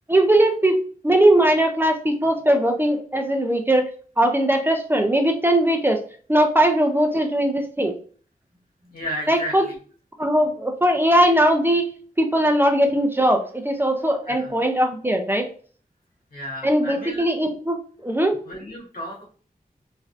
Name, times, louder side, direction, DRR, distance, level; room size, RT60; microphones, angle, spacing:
voice 1, 0.1-0.8 1.0-3.8 4.2-6.0 6.3-7.9 9.3-9.7 10.2-11.9 12.2-15.5 16.6-17.8 18.0-18.4, right 1 dB, 15° right, 4 dB, 0.4 m, -19 dB
voice 2, 8.9-9.8 14.3-14.5 16.3-17.3 18.4-19.2, equal, 80° left, -4 dB, 1.5 m, -33 dB
3.2 x 2.5 x 2.4 m, 0.43 s
wide cardioid pair, 100°, 15 cm